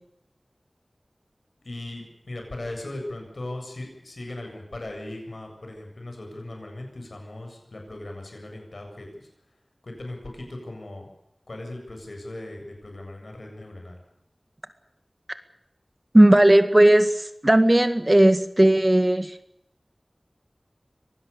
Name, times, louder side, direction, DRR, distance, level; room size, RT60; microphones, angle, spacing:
voice 1, 1.6-9.3 9.8-11.1 11.5-14.0, left 1 dB, 80° left, 3 dB, 7.6 m, -38 dB
voice 2, 16.1-19.4, right 1 dB, 30° right, 9 dB, 2.0 m, -16 dB
25.0 x 19.0 x 7.0 m, 0.78 s
wide cardioid pair, 40°, 0 cm